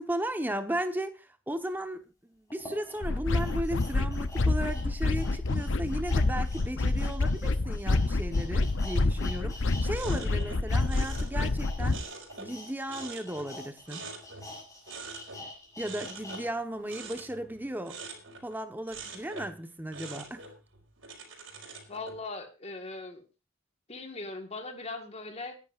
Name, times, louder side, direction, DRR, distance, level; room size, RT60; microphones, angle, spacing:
voice 1, 0.0-12.0 12.4-14.0 15.8-18.0 18.4-20.4, right 1 dB, 10° right, 7 dB, 1.2 m, -35 dB
sound 1, 1.7-1.8 2.5-9.9 10.1-16.4 16.8-16.9, left 2 dB, 15° left, 7.0 m, -47 dB
sound 2, 3.0-12.0, left 2 dB, 75° left, 0.7 m, -28 dB
sound 3, 9.9-12.6 12.9-14.6 14.9-15.4 15.8-18.6 18.9-19.6 19.9-22.2, right 4 dB, 90° right, 4.7 m, -44 dB
voice 2, 21.9-23.2 23.9-25.6, left 3 dB, 35° left, 6 dB, 1.8 m, -39 dB
27.0 x 11.0 x 2.6 m, 0.29 s
head